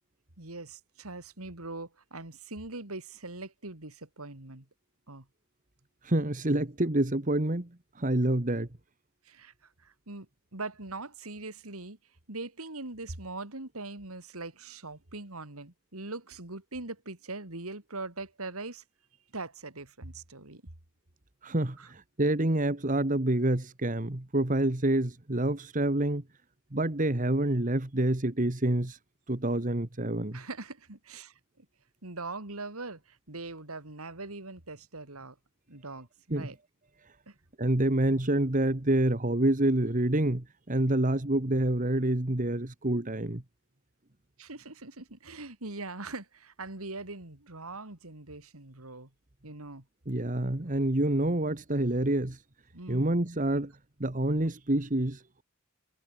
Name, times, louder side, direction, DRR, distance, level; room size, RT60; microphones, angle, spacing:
voice 1, 0.4-4.6 5.1-5.3 9.2-9.5 9.8-10.3 10.5-12.0 12.3-18.8 19.3-20.6 21.8-21.9 30.3-31.6 32.0-35.4 35.7-36.6 37.3-37.4 44.4-49.1 49.4-49.8 52.7-53.1, right 3 dB, 85° right, 3.4 m, -41 dB
voice 2, 6.0-7.7 8.0-8.7 21.4-26.2 26.7-29.0 29.3-30.4 36.3-36.5 37.6-43.4 50.1-52.4 52.9-53.7 54.0-55.4, right 1 dB, 35° right, 1.6 m, -27 dB
head